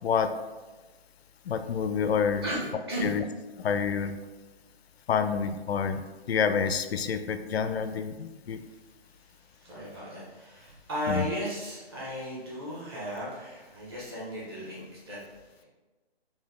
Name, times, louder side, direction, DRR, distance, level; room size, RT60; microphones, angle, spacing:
voice 1, 1.5-2.4 3.0-3.2 3.6-4.2 5.1-6.0 6.3-8.6 11.1-11.2, left 6 dB, 75° left, 9 dB, 0.5 m, -28 dB
voice 2, 2.4-3.1 8.5-15.2, equal, 25° right, -7 dB, 1.1 m, -36 dB
4.4 x 2.7 x 3.5 m, 1.2 s
hypercardioid pair, 170°, 31 cm